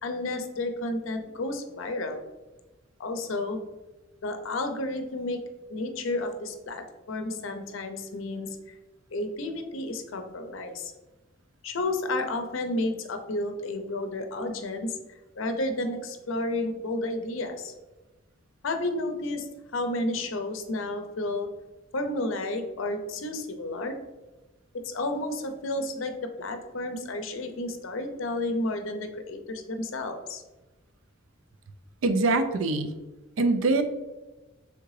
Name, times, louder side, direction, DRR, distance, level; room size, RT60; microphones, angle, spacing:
voice 1, 0.0-2.2 3.0-3.6 4.2-5.4 5.7-8.5 9.1-10.9 11.6-14.9 15.4-17.7 18.6-19.5 19.7-21.5 21.9-24.0 24.8-30.4, left 2 dB, 70° left, 6 dB, 0.5 m, -31 dB
voice 2, 32.0-32.9 33.4-33.8, right 3 dB, 75° right, 9 dB, 0.4 m, -23 dB
3.6 x 3.4 x 3.1 m, 1.1 s
head